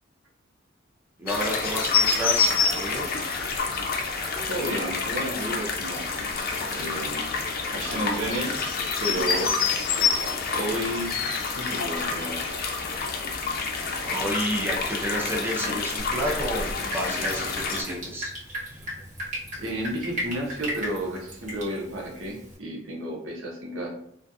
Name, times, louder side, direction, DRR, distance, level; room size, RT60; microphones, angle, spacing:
voice 1, 1.2-3.1 14.0-18.8, equal, 10° right, -3 dB, 0.5 m, -31 dB
sound 1, 1.3-17.8, left 5 dB, 50° left, 0.4 m, -28 dB
voice 2, 4.5-6.3 6.7-7.3 7.7-8.5 9.0-9.5 10.5-11.1 11.6-12.4 19.6-23.9, right 1 dB, 90° right, -1 dB, 0.7 m, -32 dB
Drip, 16.0-22.6, equal, 40° right, 1.0 m, -36 dB
2.4 x 2.3 x 2.6 m, 0.70 s
head